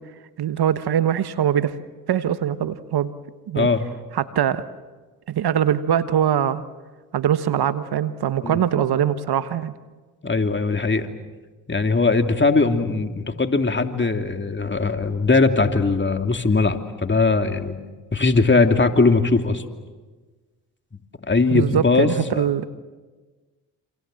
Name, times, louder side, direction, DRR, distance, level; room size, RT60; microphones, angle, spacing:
voice 1, 0.4-1.7 2.1-3.1 3.5-3.7 4.1-4.7 5.3-6.6 7.1-9.7 21.5-22.7, right 9 dB, 60° right, 12 dB, 1.3 m, -22 dB
voice 2, 3.5-3.9 8.4-8.6 10.2-11.1 11.7-17.8 18.1-19.6 21.3-22.4, left 3 dB, 25° left, 6 dB, 2.8 m, -20 dB
28.0 x 27.0 x 7.7 m, 1.3 s
hypercardioid pair, 45°, 43 cm